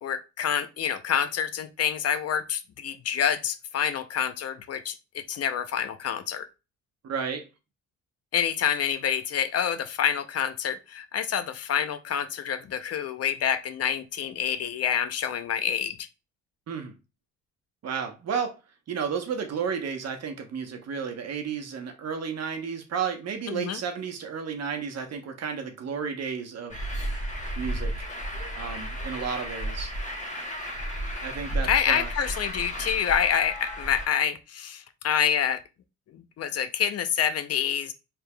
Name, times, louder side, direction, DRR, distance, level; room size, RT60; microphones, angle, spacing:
voice 1, 0.0-6.5 8.3-16.0 23.5-23.8 31.6-35.6 36.1-37.9, left 8 dB, 55° left, 0.6 m, -27 dB
voice 2, 7.0-7.4 16.7-16.9 17.8-18.5 18.9-26.7 27.6-27.9 28.5-29.9 31.2-32.1, right 6 dB, 55° right, 1.0 m, -32 dB
Truck, 26.7-34.1, right 1 dB, 25° left, 1.3 m, -33 dB
4.5 x 3.5 x 2.3 m
cardioid pair, 90°, 30 cm